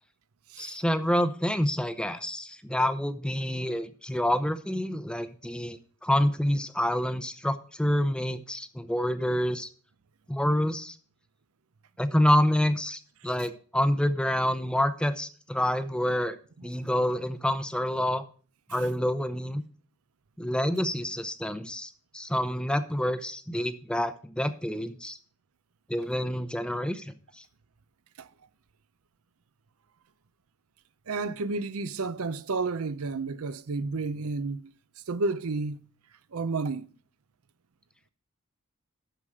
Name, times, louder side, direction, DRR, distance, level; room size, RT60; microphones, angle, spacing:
voice 1, 0.6-9.7 10.3-11.0 12.0-16.4 16.6-18.2 18.7-19.6 20.4-25.2 25.9-27.1, equal, 5° left, 0.6 m, -27 dB
voice 2, 31.1-34.6 35.1-35.8 36.3-36.9, right 3 dB, 75° right, 0.6 m, -31 dB
12.5 x 4.9 x 6.4 m
head